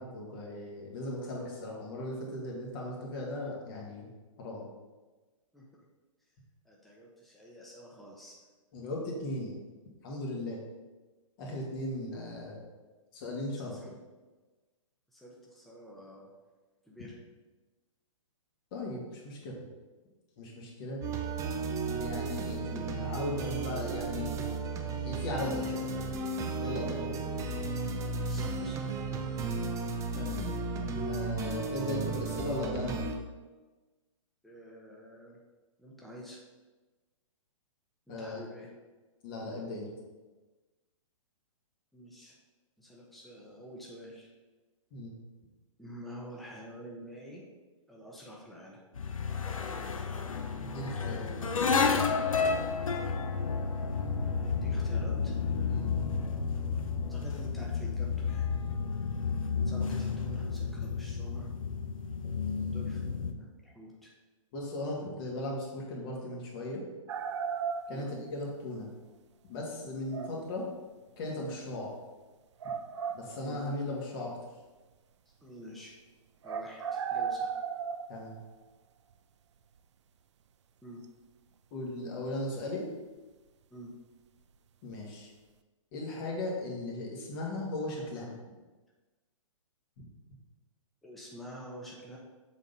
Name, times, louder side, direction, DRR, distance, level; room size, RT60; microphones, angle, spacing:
voice 1, 0.0-4.1 4.4-4.6 8.7-9.6 10.0-10.6 11.4-12.7 13.1-13.8 18.7-19.5 20.4-21.0 22.0-24.4 25.0-25.9 26.6-27.2 30.2-30.4 31.0-33.0 38.1-38.4 39.2-39.9 44.9-45.1 50.6-51.3 55.7-55.9 64.5-66.8 67.9-68.9 69.5-70.7 71.2-71.9 73.1-74.3 78.1-78.4 81.7-82.8 84.8-85.3 85.9-88.4 90.0-90.1, left 1 dB, 40° left, -2 dB, 2.1 m, -37 dB
voice 2, 6.6-8.4 13.7-13.9 15.1-16.3 16.8-17.2 28.1-29.0 34.4-35.4 35.8-36.4 38.2-38.7 41.9-42.4 42.8-44.3 45.8-47.4 47.9-48.8 54.2-55.4 57.1-58.5 59.6-61.5 62.6-64.1 67.9-68.1 70.1-70.3 73.3-73.6 75.4-75.9 76.4-77.5 80.8-81.0 83.7-83.9 91.0-92.2, equal, ahead, -4 dB, 1.1 m, -48 dB
sound 1, 21.0-33.2, right 3 dB, 20° right, 0.7 m, -34 dB
sound 2, 49.0-63.3, left 5 dB, 75° left, 0.8 m, -31 dB
sound 3, 67.1-68.4 70.1-70.5 71.7-71.8 72.6-73.8 76.4-78.6 81.0-81.1, right 6 dB, 55° right, 0.5 m, -36 dB
7.3 x 4.0 x 5.4 m, 1.2 s
figure-of-eight pair, 125°, 17 cm